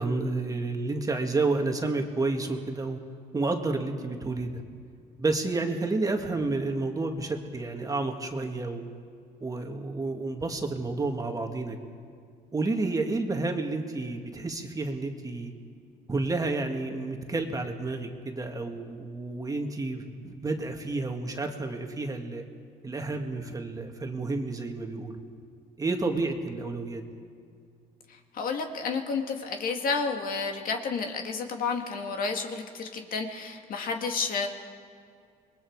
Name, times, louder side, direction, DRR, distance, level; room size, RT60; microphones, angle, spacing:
voice 1, 0.0-3.0 3.3-4.6 5.2-8.9 9.4-11.8 12.5-15.5 16.1-22.4 22.8-25.2 25.8-27.0, right 3 dB, 20° right, 3 dB, 1.9 m, -30 dB
voice 2, 28.1-34.5, left 4 dB, 55° left, 4 dB, 2.1 m, -31 dB
27.0 x 21.5 x 4.7 m, 2.2 s
cardioid pair, 110°, 17 cm